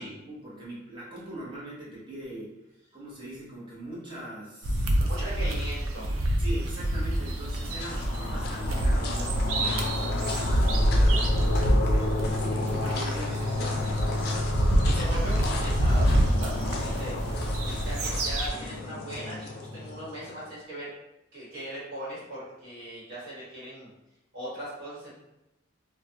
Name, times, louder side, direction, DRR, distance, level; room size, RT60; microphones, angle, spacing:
voice 1, 0.0-2.5 2.9-5.0 6.4-14.1, right 1 dB, 25° right, -7 dB, 0.8 m, -41 dB
sound 1, 4.6-18.5, right 1 dB, 80° right, 0.4 m, -26 dB
voice 2, 5.0-6.1 14.6-17.2 17.8-20.9 21.3-23.9 24.3-25.1, right 1 dB, 55° right, -9 dB, 1.2 m, -39 dB
sound 2, 7.1-20.4, left 2 dB, 50° left, 0.4 m, -32 dB
2.3 x 2.1 x 2.7 m, 0.92 s
head